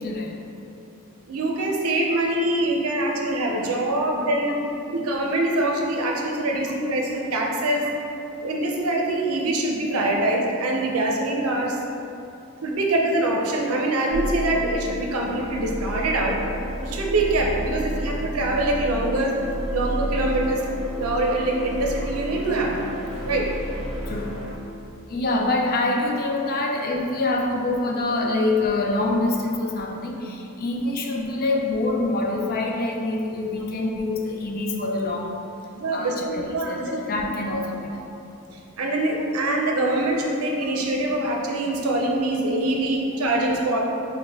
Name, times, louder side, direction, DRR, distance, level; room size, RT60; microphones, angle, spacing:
voice 1, 0.0-0.4 23.1-23.3 24.0-24.4 25.1-35.4 35.9-38.0, left 2 dB, 45° left, 0 dB, 0.5 m, -25 dB
voice 2, 1.2-4.6 4.9-7.9 8.4-11.8 12.6-16.3 16.8-19.3 19.7-22.9 23.2-23.5 35.7-37.3 38.8-43.8, right 1 dB, 80° right, -1 dB, 0.6 m, -24 dB
sound 1, 14.1-24.6, equal, ahead, 0.9 m, -31 dB
6.1 x 2.2 x 3.5 m, 2.7 s
head